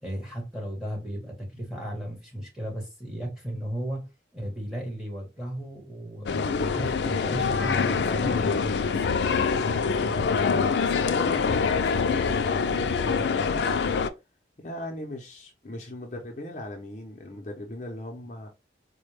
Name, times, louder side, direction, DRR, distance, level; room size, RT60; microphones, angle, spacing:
voice 1, 0.0-4.1 4.3-9.4 13.9-14.0, equal, 5° right, 1.3 m, -35 dB
sound 1, 6.3-14.1, left 5 dB, 80° left, 0.4 m, -25 dB
voice 2, 10.0-13.9 14.6-18.5, left 1 dB, 40° left, 0.6 m, -39 dB
4.2 x 2.2 x 3.2 m
head